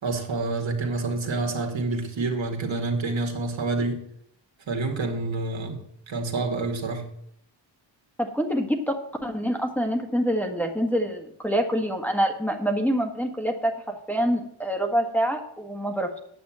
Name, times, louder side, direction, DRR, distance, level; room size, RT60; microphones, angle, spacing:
voice 1, 0.0-4.0 4.7-5.8 6.1-7.1, right 3 dB, 65° right, 2 dB, 2.2 m, -28 dB
voice 2, 8.2-16.2, equal, 5° left, 2 dB, 1.6 m, -26 dB
9.2 x 6.8 x 7.4 m, 0.70 s
cardioid pair, 75°, 48 cm